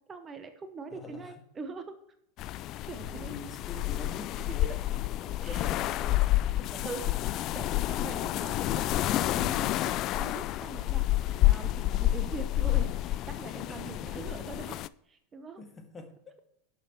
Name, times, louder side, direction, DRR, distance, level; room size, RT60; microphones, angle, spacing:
voice 1, 0.1-2.0 2.8-3.3 4.6-4.8 5.4-5.6 6.8-11.1 11.4-15.6, right 4 dB, 25° right, 9 dB, 0.9 m, -43 dB
voice 2, 0.9-1.4 2.9-4.8 5.1-6.9 13.7-14.3 15.6-16.3, left 3 dB, 25° left, 5 dB, 1.7 m, -45 dB
sound 1, 2.4-14.9, left 15 dB, 45° left, 0.3 m, -29 dB
11.5 x 6.3 x 4.4 m, 0.74 s
hypercardioid pair, 90°, 0 cm